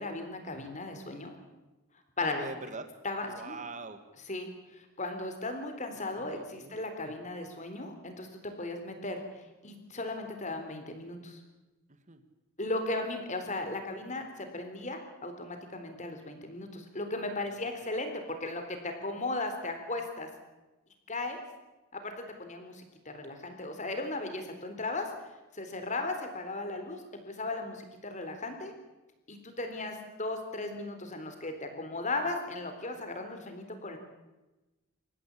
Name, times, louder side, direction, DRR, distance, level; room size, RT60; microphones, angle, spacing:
voice 1, 0.0-1.3 2.2-2.4 3.0-3.7 4.3-9.2 9.6-11.4 12.6-20.3 21.1-21.4 22.0-22.1 22.4-25.1 25.5-28.7 29.3-34.0, left 2 dB, 35° left, 6 dB, 3.8 m, -36 dB
voice 2, 2.2-2.9 3.3-4.0 6.1-6.8 11.9-12.2 17.5-17.7, right 3 dB, 35° right, 10 dB, 2.0 m, -43 dB
28.0 x 14.5 x 8.5 m, 1.1 s
head